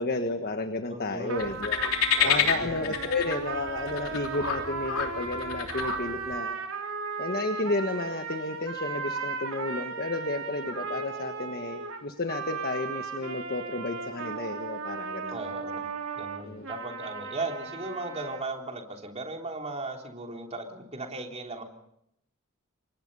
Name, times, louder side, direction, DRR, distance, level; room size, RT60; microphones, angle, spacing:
voice 1, 0.0-1.8 2.2-6.6 7.2-15.4 16.4-16.9, left 2 dB, 45° left, 7 dB, 1.5 m, -32 dB
voice 2, 0.9-1.5 2.2-2.7 15.3-21.6, right 2 dB, 30° right, 2 dB, 3.5 m, -37 dB
sound 1, 1.3-18.4, right 4 dB, 75° right, 4.0 m, -36 dB
sound 2, 1.4-6.4, left 7 dB, 85° left, 3.4 m, -29 dB
29.0 x 24.0 x 5.5 m, 0.76 s
head